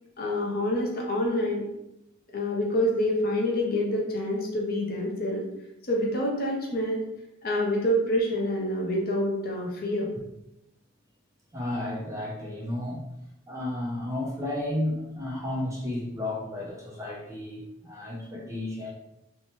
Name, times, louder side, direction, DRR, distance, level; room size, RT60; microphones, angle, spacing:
voice 1, 0.2-1.7 2.3-5.4 5.9-7.0 7.4-10.1, left 1 dB, 50° left, -1 dB, 0.6 m, -27 dB
voice 2, 11.5-13.1 13.5-18.9, left 1 dB, 15° right, -3 dB, 0.5 m, -32 dB
2.7 x 2.1 x 2.9 m, 0.85 s
head